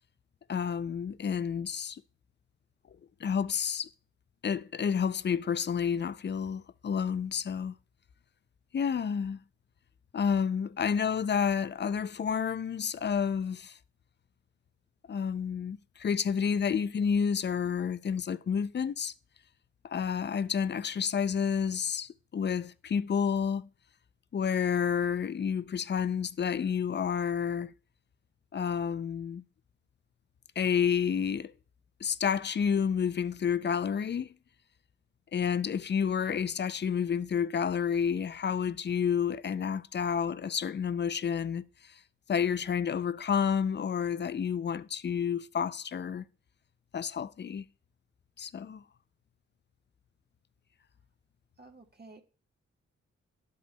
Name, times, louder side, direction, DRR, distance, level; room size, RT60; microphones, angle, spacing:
voice 1, 0.5-2.0 3.2-3.9 4.4-7.7 8.7-9.4 10.1-13.8 15.1-19.1 19.8-23.7 24.3-27.7 28.5-29.4 30.6-31.5 32.0-34.3 35.3-42.0 42.3-46.2 46.9-47.6 48.4-48.8, left 7 dB, 40° left, 0.4 m, -30 dB
voice 2, 51.6-52.2, right 3 dB, 35° right, 1.2 m, -52 dB
11.5 x 5.2 x 2.2 m
cardioid pair, 50°, 29 cm